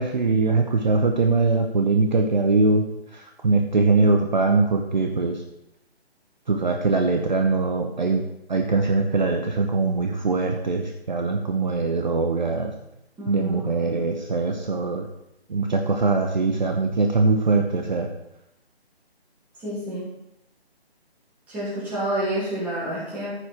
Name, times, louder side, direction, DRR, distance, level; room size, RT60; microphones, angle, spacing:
voice 1, 0.0-2.9 3.1-5.4 6.5-8.2 8.5-12.7 13.3-15.1 15.5-18.1, right 3 dB, 45° right, 3 dB, 0.9 m, -22 dB
voice 2, 13.2-14.0 19.6-20.0 21.5-23.3, right 1 dB, 5° right, -9 dB, 2.2 m, -29 dB
14.5 x 4.9 x 4.4 m, 0.82 s
figure-of-eight pair, 165°, 32 cm